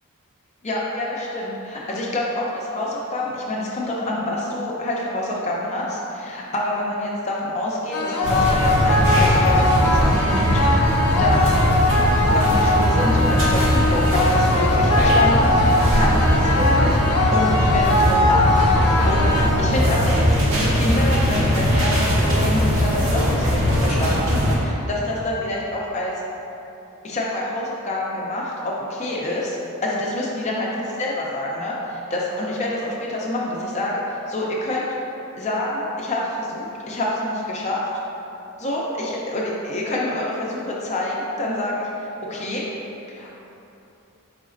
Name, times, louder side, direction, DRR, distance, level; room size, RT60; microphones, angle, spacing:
voice 1, 0.6-10.8 11.2-11.5 12.3-18.5 18.9-19.3 19.6-20.3 20.6-26.1 27.0-29.6 29.8-34.9 35.4-37.8 38.6-41.9 42.3-42.6 43.1-43.3, left 1 dB, 30° left, -4 dB, 0.4 m, -27 dB
sound 1, 7.9-19.9, left 1 dB, 90° left, 0.4 m, -21 dB
sound 2, 8.2-24.6, equal, 65° right, 0.9 m, -20 dB
4.9 x 3.9 x 2.5 m, 2.9 s
head